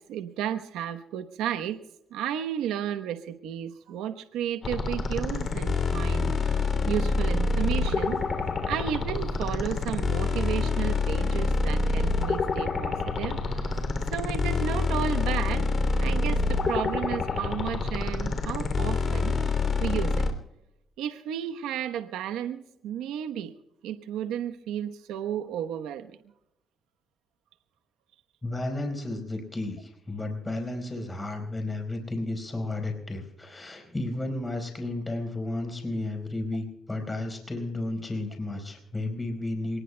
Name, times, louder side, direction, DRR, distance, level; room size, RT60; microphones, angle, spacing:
voice 1, 0.0-1.8 2.1-8.2 8.7-13.8 14.1-15.7 16.0-20.3 21.0-23.5 23.8-26.2, right 10 dB, 90° right, 7 dB, 1.0 m, -33 dB
sound 1, 4.6-20.3, left 3 dB, 40° left, 3.0 m, -27 dB
voice 2, 28.4-39.8, left 2 dB, 20° left, 4 dB, 4.6 m, -33 dB
27.5 x 19.5 x 2.3 m, 0.85 s
cardioid pair, 90°, 0 cm